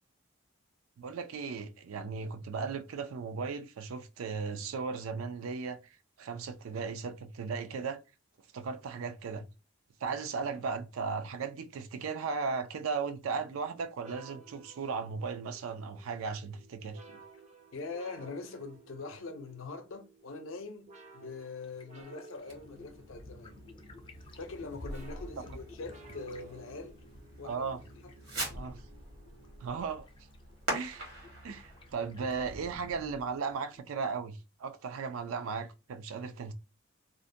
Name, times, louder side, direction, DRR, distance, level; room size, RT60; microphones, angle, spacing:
voice 1, 1.0-8.0 8.5-9.5 10.0-17.2 27.4-27.8 28.5-28.8 29.6-30.1 30.7-31.1 31.4-36.5, right 5 dB, 90° right, 0.4 m, -36 dB
sound 1, 14.0-30.2, right 3 dB, 35° right, 0.5 m, -57 dB
voice 2, 17.7-20.9 21.1-23.6 24.4-27.0 27.4-27.7 28.0-28.1, left 3 dB, 75° left, 0.6 m, -43 dB
sound 2, 21.6-33.8, left 1 dB, 25° left, 0.3 m, -52 dB
Fireworks, 22.4-33.1, right 1 dB, 75° right, 1.1 m, -44 dB
2.5 x 2.1 x 2.6 m
head